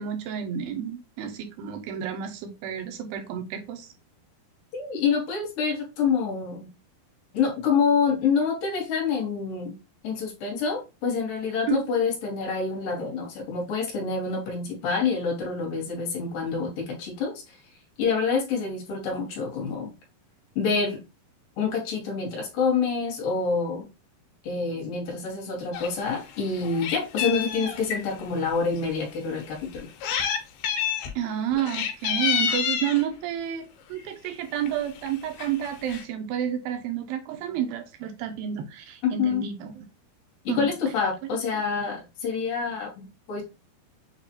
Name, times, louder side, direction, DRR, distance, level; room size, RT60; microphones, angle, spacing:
voice 1, 0.0-3.9 11.7-11.9 31.2-39.8 40.5-40.7, right 9 dB, 85° right, 5 dB, 2.3 m, -30 dB
voice 2, 4.7-6.7 7.3-9.8 10.0-17.6 18.0-19.9 20.6-21.0 21.6-23.9 24.4-29.9 39.0-39.4 40.4-43.4, left 5 dB, 70° left, 0 dB, 2.7 m, -27 dB
Meow, 25.7-25.9 26.3-28.0 28.8-28.9 29.7-30.4 30.6-31.1 31.6-33.0 34.0-34.3 34.7-34.8 35.0-35.1 35.4-36.0, left 8 dB, 90° left, 2.7 m, -28 dB
6.7 x 2.4 x 2.9 m, 0.28 s
omnidirectional pair, 4.4 m